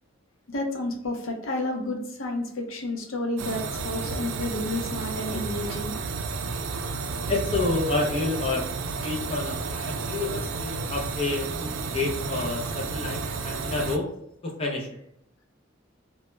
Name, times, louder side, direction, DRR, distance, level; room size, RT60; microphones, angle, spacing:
voice 1, 0.5-5.9, left 1 dB, 85° left, 1 dB, 0.6 m, -30 dB
sound 1, 3.4-14.0, right 4 dB, 80° right, 0.3 m, -32 dB
voice 2, 7.3-8.6 9.0-14.1 14.4-14.9, left 3 dB, 30° left, -1 dB, 0.5 m, -29 dB
2.2 x 2.1 x 3.0 m, 0.75 s
head